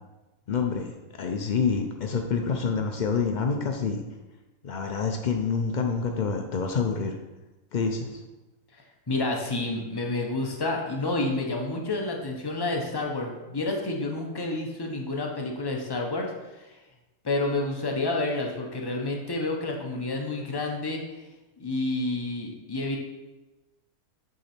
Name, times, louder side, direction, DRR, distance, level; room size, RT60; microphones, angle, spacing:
voice 1, 0.5-4.0 4.6-7.2 7.7-8.2, left 5 dB, 90° left, 3 dB, 0.4 m, -27 dB
voice 2, 9.1-16.3 16.6-16.7 17.2-21.0 21.6-23.0, left 2 dB, 25° left, 1 dB, 0.6 m, -29 dB
7.9 x 3.8 x 4.3 m, 1.1 s
omnidirectional pair, 1.5 m